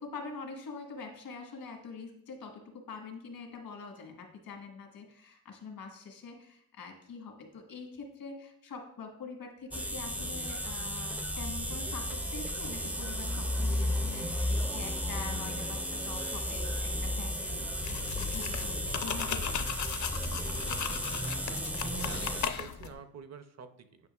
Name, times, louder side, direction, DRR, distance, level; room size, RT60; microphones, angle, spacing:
voice 1, 0.0-20.0, left 4 dB, 80° left, 3 dB, 1.4 m, -45 dB
sound 1, 9.7-22.5, equal, 5° right, 0.4 m, -34 dB
sound 2, 17.8-22.9, left 8 dB, 55° left, 0.6 m, -37 dB
voice 2, 21.3-24.1, right 6 dB, 50° right, 9 dB, 0.6 m, -48 dB
9.5 x 5.2 x 2.4 m, 0.74 s
cardioid pair, 90°, 35 cm